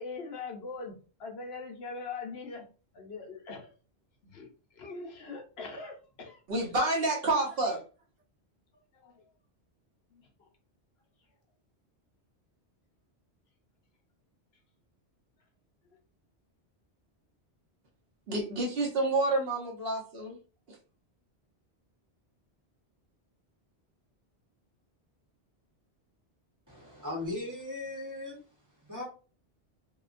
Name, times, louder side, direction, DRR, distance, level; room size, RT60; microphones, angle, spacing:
voice 1, 0.0-2.7 2.9-3.7 4.2-4.5 4.7-6.4 8.9-9.2 10.1-10.5, left 4 dB, 70° left, 0.9 m, -42 dB
voice 2, 6.5-7.8 18.3-20.4 20.7-20.8, right 2 dB, 65° right, 1.0 m, -29 dB
voice 3, 26.7-28.4 28.8-29.0, left 2 dB, 20° right, 0.9 m, -38 dB
2.8 x 2.2 x 2.4 m
omnidirectional pair, 1.1 m